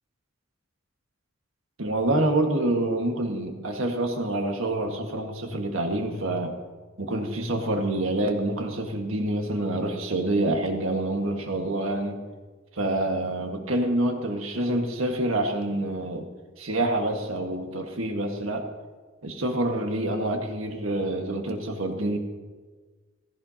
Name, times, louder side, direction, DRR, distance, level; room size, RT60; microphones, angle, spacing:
voice 1, 1.8-6.5 7.0-12.2 12.7-16.2 16.6-18.7 19.2-22.2, right 1 dB, 85° right, 3 dB, 1.7 m, -27 dB
16.5 x 14.5 x 2.9 m, 1.3 s
head